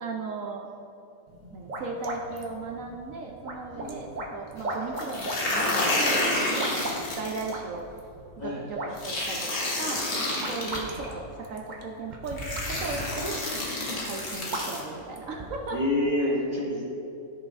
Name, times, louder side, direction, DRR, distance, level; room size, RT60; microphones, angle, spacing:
voice 1, 0.0-0.7 1.5-6.8 7.1-7.9 8.4-10.0 10.5-12.4 12.7-13.4 14.0-15.8, right 4 dB, 65° right, 1 dB, 1.0 m, -36 dB
sound 1, 1.3-15.8, right 1 dB, 40° right, 0.7 m, -39 dB
voice 2, 3.7-4.1 8.4-8.8 15.7-16.9, left 1 dB, 30° left, -5 dB, 1.3 m, -28 dB
sound 2, 5.0-7.5 9.0-10.8 11.8-11.9 12.4-14.8, left 1 dB, 75° left, 1.9 m, -29 dB
13.5 x 5.9 x 2.6 m, 2.7 s
omnidirectional pair, 1.6 m